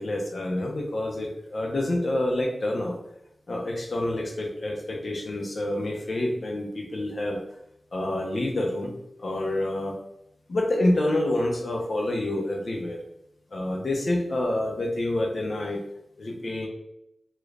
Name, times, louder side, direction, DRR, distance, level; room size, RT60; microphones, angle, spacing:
voice 1, 0.0-3.0 3.5-7.4 7.9-8.9 9.2-9.9 10.5-13.0 13.5-15.8 16.2-16.7, left 1 dB, 65° left, 0 dB, 0.8 m, -27 dB
3.0 x 2.5 x 3.2 m, 0.80 s
cardioid pair, 40°, 0 cm